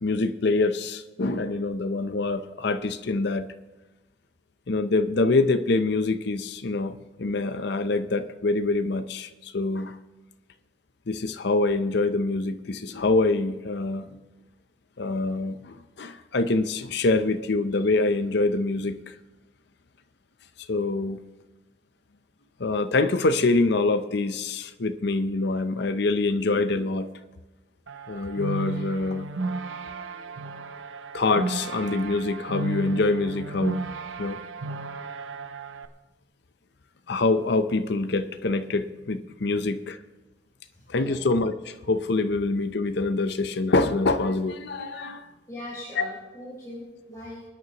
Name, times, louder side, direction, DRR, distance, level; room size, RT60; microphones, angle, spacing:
voice 1, 0.0-3.5 4.7-10.0 11.1-14.2 15.0-19.1 20.7-21.2 22.6-27.1 28.1-29.3 30.0-30.1 31.1-33.8 34.2-34.4 37.1-40.0 40.9-45.3 46.0-46.1, left 3 dB, 60° left, 0.6 m, -25 dB
sound 1, 27.9-35.9, right 3 dB, 85° right, 0.7 m, -34 dB
voice 2, 40.7-41.2 45.5-47.4, left 1 dB, 20° left, 3.9 m, -40 dB
28.0 x 9.5 x 3.0 m
head